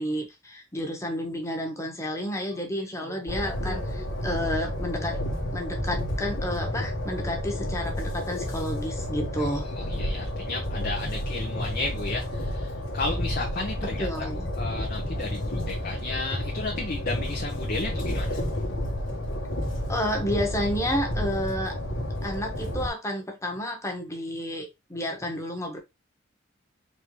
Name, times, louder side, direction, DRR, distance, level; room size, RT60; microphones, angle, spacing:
voice 1, 0.0-5.2 5.5-9.7 13.8-14.5 19.9-21.8 22.2-25.8, equal, 15° left, 1.2 m, -31 dB
Train, 3.3-22.9, left 1 dB, 70° left, 1.3 m, -31 dB
voice 2, 9.4-14.1 14.6-18.4, left 3 dB, 50° left, 0.8 m, -33 dB
4.4 x 3.4 x 3.1 m
head